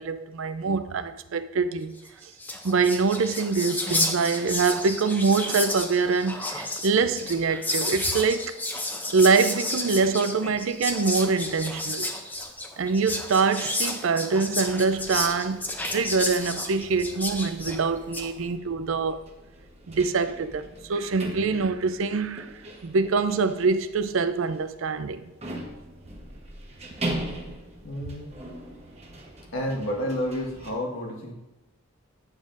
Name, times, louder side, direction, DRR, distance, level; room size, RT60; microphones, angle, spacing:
voice 1, 0.0-1.9 2.6-8.5 9.1-12.1 12.8-19.2 19.9-22.5 22.8-25.3, right 4 dB, 75° right, 0.5 m, -24 dB
Whispering, 2.1-2.2 2.3-18.3, left 2 dB, 10° left, 0.5 m, -31 dB
sound 1, 14.8-30.7, right 1 dB, 30° right, 1.1 m, -40 dB
voice 2, 27.8-28.3 29.5-31.3, equal, 80° left, 1.6 m, -30 dB
9.4 x 7.3 x 2.6 m
head